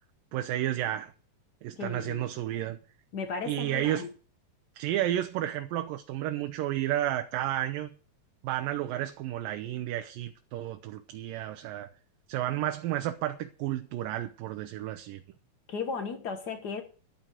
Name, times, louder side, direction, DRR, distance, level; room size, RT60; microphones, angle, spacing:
voice 1, 0.3-1.1 1.6-2.8 3.5-4.1 4.8-7.9 8.4-11.9 12.3-15.2, right 13 dB, 80° right, 2.5 m, -32 dB
voice 2, 1.8-2.2 3.1-4.1 15.7-16.8, left 5 dB, 80° left, 0.9 m, -35 dB
11.5 x 9.2 x 6.1 m
omnidirectional pair, 4.0 m